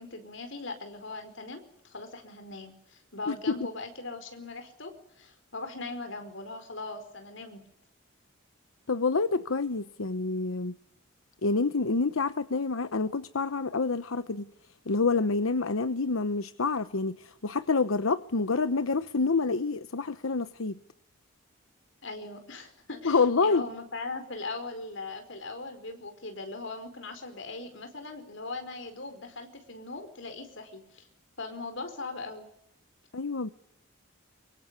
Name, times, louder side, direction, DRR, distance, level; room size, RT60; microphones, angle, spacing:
voice 1, 0.0-7.6 22.0-31.0 31.4-32.5, left 3 dB, 65° left, 4.8 m, -40 dB
voice 2, 8.9-10.8 11.4-14.5 14.9-20.8 23.0-23.6 33.1-33.5, left 4 dB, 85° left, 0.9 m, -27 dB
24.5 x 24.0 x 8.3 m
head